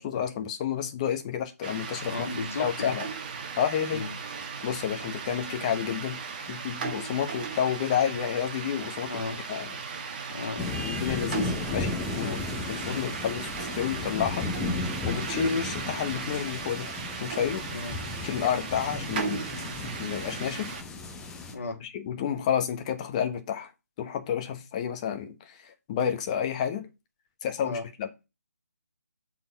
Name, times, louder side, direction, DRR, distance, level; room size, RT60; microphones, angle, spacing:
voice 1, 0.0-2.1 2.6-3.1 3.6-4.0 4.6-6.2 6.5-9.2 9.5-9.7 10.8-12.4 12.9-13.5 13.7-14.5 15.1-16.9 17.2-17.6 18.2-19.4 20.0-20.7 21.8-23.7 24.0-26.8 27.4-28.1, left 8 dB, 25° left, 1.1 m, -30 dB
sound 1, 1.6-20.8, right 5 dB, 30° right, 1.1 m, -37 dB
voice 2, 2.1-3.0 3.9-4.1 9.1-9.4 10.3-10.7 12.2-12.4 17.7-18.0 21.5-21.8 27.6-27.9, left 3 dB, 50° left, 1.9 m, -34 dB
sound 2, 10.6-21.5, left 3 dB, 5° left, 0.8 m, -35 dB
6.9 x 4.2 x 5.3 m
figure-of-eight pair, 155°, 9 cm